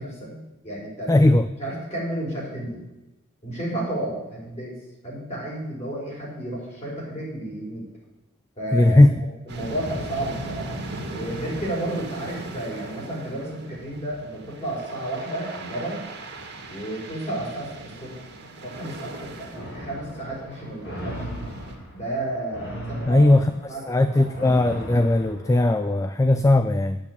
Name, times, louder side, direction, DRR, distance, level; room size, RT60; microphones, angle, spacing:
voice 1, 0.0-1.3 1.6-2.8 3.4-4.7 5.0-7.9 8.6-9.0 9.5-10.7 11.1-16.0 16.7-18.1 18.6-21.1 21.9-23.3 23.7-23.8 24.1-24.6, right 1 dB, 30° left, -4 dB, 4.6 m, -32 dB
voice 2, 1.1-1.5 8.7-9.1 23.1-23.5 23.9-27.0, left 2 dB, 15° left, 10 dB, 0.3 m, -18 dB
sound 1, 9.5-21.8, right 2 dB, 50° right, 2.1 m, -38 dB
sound 2, 19.5-26.0, equal, 55° left, 3.1 m, -37 dB
8.9 x 8.2 x 8.4 m, 1.0 s
head